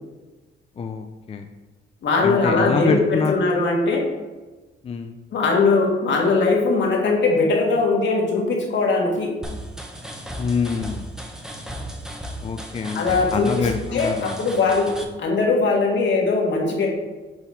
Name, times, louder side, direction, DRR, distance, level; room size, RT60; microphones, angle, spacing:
voice 1, 0.8-1.5 2.2-3.6 4.8-5.2 10.4-11.1 12.4-14.4, left 5 dB, 30° left, 5 dB, 0.4 m, -26 dB
voice 2, 2.0-4.0 5.3-9.3 12.9-14.9 15.2-16.9, left 3 dB, 65° left, -1 dB, 1.7 m, -20 dB
sound 1, 9.4-15.0, equal, 5° right, 0.9 m, -35 dB
7.1 x 4.0 x 4.0 m, 1.2 s
cardioid pair, 90°, 20 cm